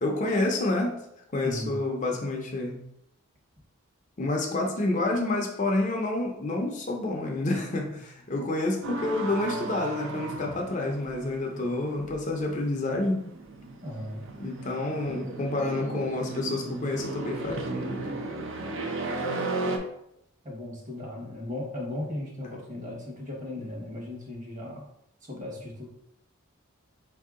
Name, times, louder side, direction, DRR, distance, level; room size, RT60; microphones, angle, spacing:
voice 1, 0.0-1.0 1.3-2.8 4.2-13.2 14.4-18.2, left 2 dB, 35° left, 1 dB, 0.5 m, -29 dB
voice 2, 1.4-1.7 13.8-14.2 20.4-24.9 25.2-25.9, left 1 dB, 35° right, -1 dB, 1.2 m, -36 dB
sound 1, 8.8-19.8, right 2 dB, 60° right, 0.6 m, -35 dB
4.2 x 2.7 x 3.6 m, 0.78 s
head